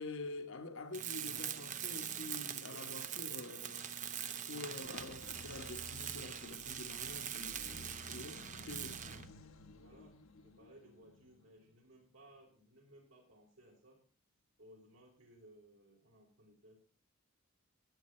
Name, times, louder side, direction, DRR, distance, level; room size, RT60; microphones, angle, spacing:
voice 1, 0.0-3.8 4.5-9.0, left 2 dB, 65° left, 1.3 m, -47 dB
Tools, 0.9-9.3, right 9 dB, 35° right, 0.9 m, -43 dB
sound 1, 4.8-12.4, left 2 dB, 80° left, 1.3 m, -55 dB
voice 2, 9.7-14.0 14.6-16.8, right 1 dB, 70° right, 5.8 m, -61 dB
15.0 x 9.3 x 4.3 m
head